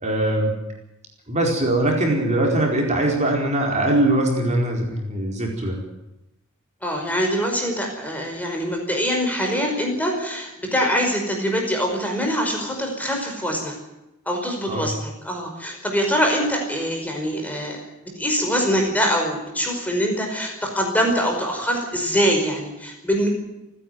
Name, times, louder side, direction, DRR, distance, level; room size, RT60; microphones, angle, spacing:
voice 1, 0.0-0.5 1.3-5.8 14.7-14.9, right 1 dB, 35° right, 0 dB, 4.6 m, -21 dB
voice 2, 6.8-13.7 14.2-23.3, equal, 5° left, 2 dB, 5.1 m, -24 dB
29.5 x 10.5 x 9.4 m, 0.92 s
head